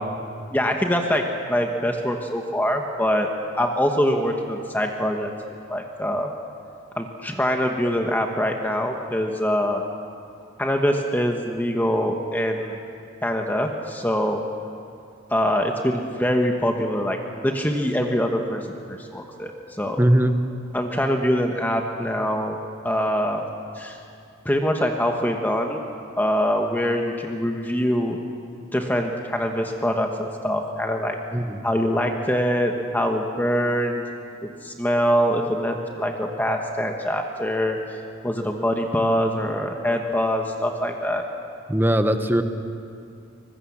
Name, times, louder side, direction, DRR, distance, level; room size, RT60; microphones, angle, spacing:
voice 1, 0.5-1.2 1.5-5.3 5.7-6.3 7.0-9.8 10.6-12.8 13.2-14.4 15.3-20.0 20.7-22.6 22.8-23.5 23.8-24.0 24.4-25.8 26.2-28.2 28.7-31.2 31.6-34.1 34.4-37.8 38.2-41.3, equal, 10° left, 3 dB, 1.2 m, -24 dB
voice 2, 20.0-20.4 31.3-31.6 41.7-42.4, right 1 dB, 10° right, 8 dB, 1.0 m, -20 dB
24.0 x 20.5 x 7.3 m, 2.5 s
head